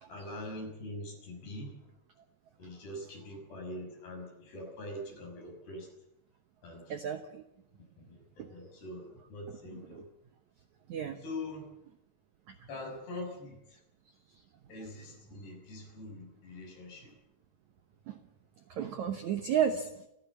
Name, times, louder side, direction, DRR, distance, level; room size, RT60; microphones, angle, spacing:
voice 1, 0.1-1.7 2.6-5.9 6.6-7.0 8.0-10.1 11.2-11.7 12.7-13.8 14.7-17.2, left 1 dB, 70° left, 1 dB, 8.1 m, -43 dB
voice 2, 6.9-7.4 8.4-8.5 9.9-10.0 10.9-11.2 12.5-12.6 18.1-18.2 18.7-20.1, right 8 dB, 75° right, 7 dB, 1.7 m, -33 dB
28.0 x 15.0 x 7.4 m, 0.86 s
omnidirectional pair, 4.8 m